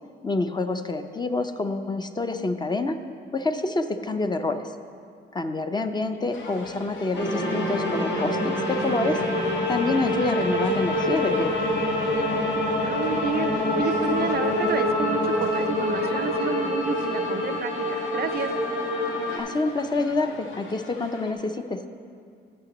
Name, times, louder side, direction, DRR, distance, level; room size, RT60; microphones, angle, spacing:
voice 1, 0.2-3.0 3.3-4.7 5.3-9.2 9.7-11.5 19.4-21.8, left 3 dB, 20° left, 8 dB, 0.5 m, -27 dB
sound 1, 6.3-21.3, left 4 dB, 80° left, 0.9 m, -40 dB
sound 2, 7.1-19.4, left 1 dB, 60° left, 1.5 m, -26 dB
voice 2, 12.8-18.5, right 7 dB, 50° right, 11 dB, 0.4 m, -30 dB
15.5 x 5.9 x 3.0 m, 2.3 s
cardioid pair, 90°, 20 cm